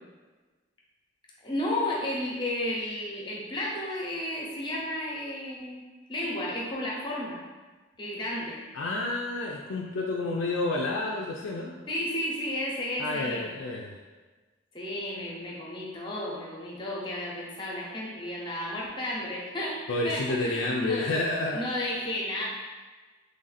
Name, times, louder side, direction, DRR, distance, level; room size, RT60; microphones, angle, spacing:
voice 1, 1.4-5.8 6.1-7.4 8.0-8.6 11.9-13.6 14.7-21.2 21.5-22.5, left 1 dB, 25° left, -4 dB, 0.7 m, -33 dB
voice 2, 8.7-11.7 13.0-14.0 19.9-21.6, left 2 dB, 80° left, -2 dB, 0.4 m, -29 dB
3.2 x 2.5 x 4.0 m, 1.3 s
head